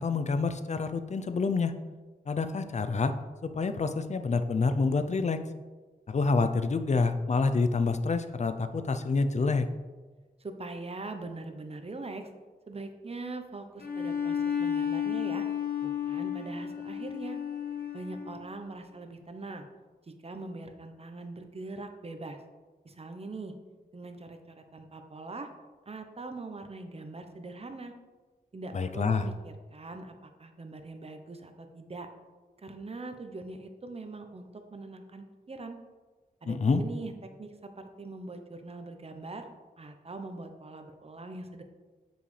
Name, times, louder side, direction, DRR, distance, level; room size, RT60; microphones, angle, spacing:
voice 1, 0.0-1.7 2.3-3.1 3.4-5.4 6.1-9.7 28.7-29.2 36.5-36.8, left 4 dB, 45° left, 9 dB, 0.5 m, -27 dB
voice 2, 10.4-12.3 12.7-15.4 15.8-17.4 17.9-19.7 20.1-22.4 22.8-23.5 23.9-25.5 25.9-27.9 28.5-32.1 32.6-35.8 36.4-37.1 37.4-41.6, right 3 dB, 40° right, 6 dB, 0.8 m, -42 dB
Bowed string instrument, 13.8-18.5, left 8 dB, 75° left, 0.9 m, -32 dB
7.5 x 5.2 x 3.3 m, 1.3 s
cardioid pair, 65°, 16 cm